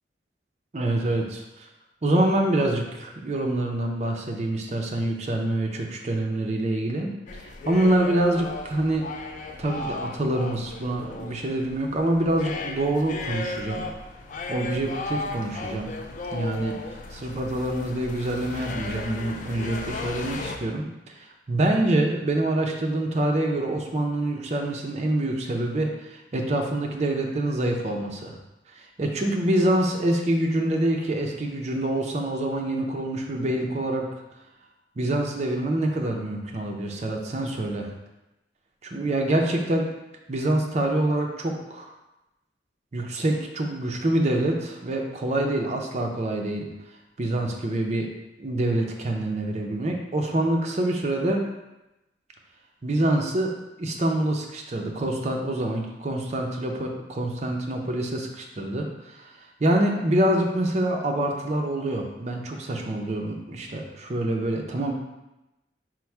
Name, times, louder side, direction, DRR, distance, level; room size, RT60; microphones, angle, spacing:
voice 1, 0.7-1.7 2.0-7.1 7.4-9.1 9.6-13.9 14.5-16.0 16.3-16.8 17.1-28.3 28.7-34.0 35.0-37.9 38.8-39.9 40.3-41.9 42.9-46.7 47.2-48.1 48.4-51.4 52.8-53.5 53.8-59.3 59.6-64.9, right 1 dB, 40° right, 2 dB, 0.5 m, -26 dB
sound 1, 7.3-20.6, left 3 dB, 45° left, 0.3 m, -35 dB
4.5 x 2.1 x 4.4 m, 0.97 s
head